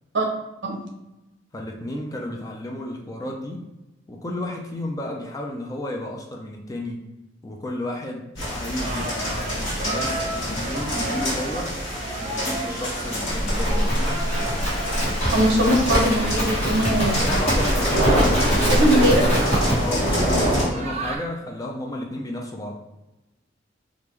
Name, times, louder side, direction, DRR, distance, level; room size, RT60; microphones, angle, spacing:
voice 1, 1.5-3.6 4.1-7.0 7.4-11.7 12.2-14.2 17.1-19.4 19.8-22.8, left 1 dB, 20° left, 0 dB, 0.4 m, -32 dB
sound 1, 8.4-20.7, equal, 75° left, 1.4 m, -26 dB
sound 2, 8.8-21.2, right 2 dB, 35° right, 0.5 m, -34 dB
Livestock farm animals working animals, 13.3-19.8, equal, 35° left, 1.2 m, -23 dB
voice 2, 15.3-17.3 18.7-19.2, equal, 65° right, 0 dB, 0.8 m, -20 dB
3.5 x 2.5 x 3.1 m, 1.0 s
head